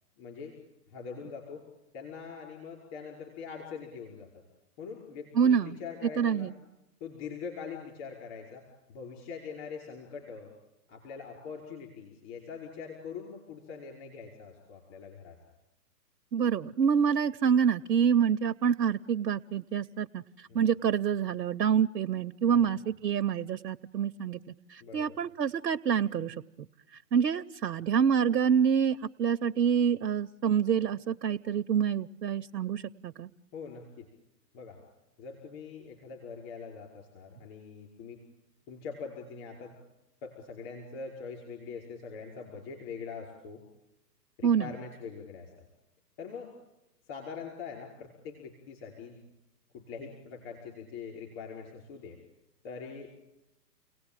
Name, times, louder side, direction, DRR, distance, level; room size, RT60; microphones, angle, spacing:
voice 1, 0.2-0.5 0.9-1.6 1.9-4.3 4.8-6.5 7.0-10.5 10.9-15.4 20.5-20.6 22.5-22.8 24.8-25.2 33.5-34.1 34.5-34.8 35.2-38.2 38.7-39.7 40.2-43.6 44.4-45.5 46.2-46.5 47.1-49.2 49.7-52.2 52.6-53.3, left 5 dB, 35° left, -1 dB, 5.5 m, -43 dB
voice 2, 5.3-5.8 6.2-6.5 16.3-20.2 20.5-24.4 24.7-26.7 27.1-33.3 44.4-44.7, right 7 dB, 85° right, 8 dB, 0.8 m, -27 dB
30.0 x 18.5 x 9.1 m, 0.96 s
hypercardioid pair, 130°, 50 cm